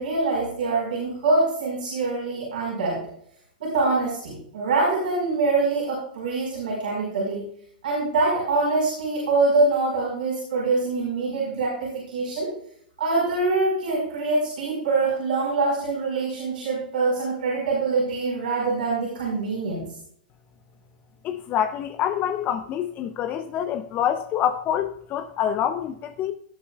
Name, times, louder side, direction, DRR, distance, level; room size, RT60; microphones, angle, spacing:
voice 1, 0.0-3.0 3.6-7.4 7.8-12.5 13.0-19.9, right 3 dB, 70° right, 4.8 m, -24 dB
voice 2, 21.2-26.3, left 9 dB, 35° left, 0.7 m, -26 dB
17.5 x 8.5 x 2.4 m
hypercardioid pair, 105°, 5 cm